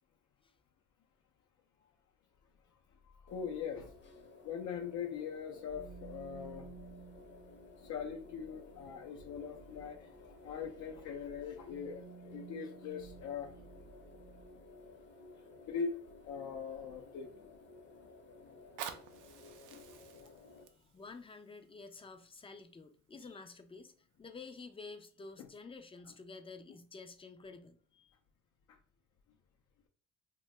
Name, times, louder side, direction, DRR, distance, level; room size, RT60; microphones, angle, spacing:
voice 1, 3.2-3.9 4.4-6.7 7.8-13.5 15.7-15.9 16.2-17.3 19.7-20.0 23.2-23.3 25.4-25.5, left 6 dB, 70° left, 0.5 m, -41 dB
sound 1, 3.3-20.6, left 3 dB, 40° left, 0.8 m, -56 dB
sound 2, 5.7-14.8, right 5 dB, 55° right, 0.8 m, -55 dB
Fire, 18.5-23.5 24.1-24.2, right 9 dB, 90° right, 0.5 m, -50 dB
voice 2, 20.7-23.9 24.2-28.1, left 4 dB, 20° left, 0.4 m, -50 dB
2.7 x 2.2 x 3.1 m
cardioid pair, 90°, 30 cm